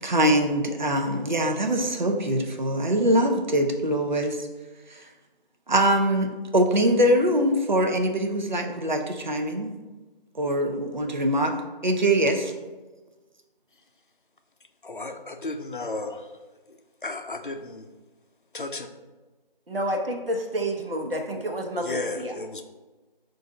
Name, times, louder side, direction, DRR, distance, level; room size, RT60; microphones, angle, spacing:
voice 1, 0.0-4.5 4.9-5.0 5.7-9.8 10.3-11.5 11.8-12.5, right 1 dB, 50° right, 3 dB, 0.6 m, -23 dB
voice 2, 14.8-16.4 16.7-16.8 17.0-17.9 18.5-18.9 21.8-22.6, left 2 dB, 60° left, 6 dB, 0.5 m, -34 dB
voice 3, 19.7-22.3, equal, 75° right, 2 dB, 0.9 m, -29 dB
5.5 x 2.6 x 3.7 m, 1.2 s
figure-of-eight pair, 175°, 29 cm